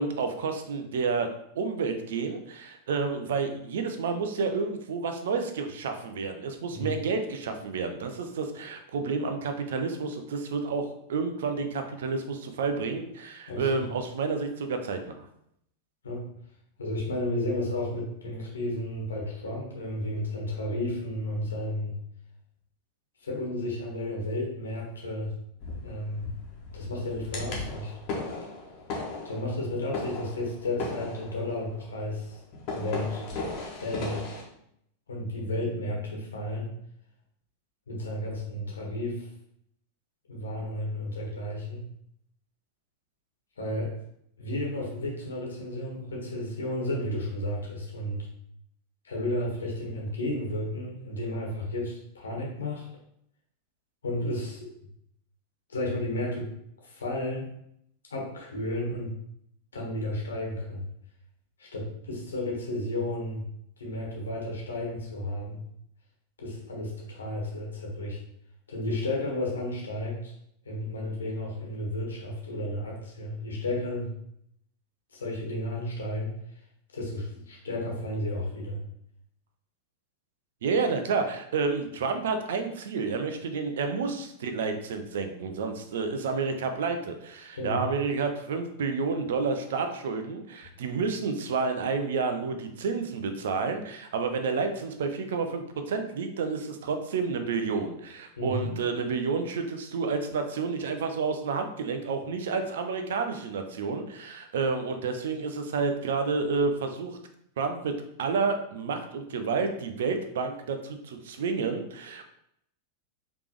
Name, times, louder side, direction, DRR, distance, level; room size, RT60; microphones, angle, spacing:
voice 1, 0.0-15.3 80.6-107.2 107.6-112.2, right 4 dB, 60° right, 6 dB, 0.6 m, -30 dB
voice 2, 13.5-13.9 16.0-16.3 16.8-21.9 23.2-25.3 25.8-26.3 26.7-27.9 29.2-32.4 32.7-33.2 33.8-34.2 35.1-36.7 37.9-39.3 40.3-41.9 43.6-43.9 44.4-48.3 49.0-52.9 54.0-54.7 55.7-56.5 56.8-57.5 58.1-59.1 59.7-60.8 61.6-63.4 63.8-65.6 66.4-68.2 68.7-70.3 70.6-74.1 75.1-76.3 76.9-78.8 87.5-87.8 93.3-93.4 98.4-98.8, left 1 dB, 70° left, -2 dB, 1.4 m, -32 dB
sound 1, 25.6-34.4, left 3 dB, 40° left, 1.2 m, -37 dB
5.1 x 3.2 x 3.1 m, 0.73 s
figure-of-eight pair, 90°, 0 cm